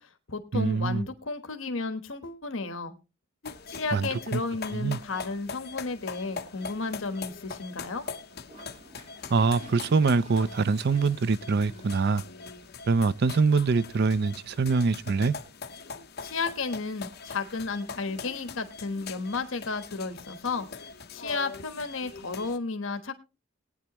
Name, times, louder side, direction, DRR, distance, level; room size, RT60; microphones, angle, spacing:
voice 1, 0.0-3.0 3.7-8.0 16.2-23.1, left 4 dB, 70° left, 1.3 m, -33 dB
voice 2, 0.5-1.1 3.9-4.4 4.7-5.0 9.3-12.2 12.9-15.3, right 4 dB, 55° right, 0.5 m, -24 dB
sound 1, 3.4-22.6, left 5 dB, 55° left, 1.0 m, -42 dB
Toilet flush, 8.5-13.5, right 1 dB, 35° right, 4.4 m, -51 dB
18.5 x 9.6 x 3.0 m
head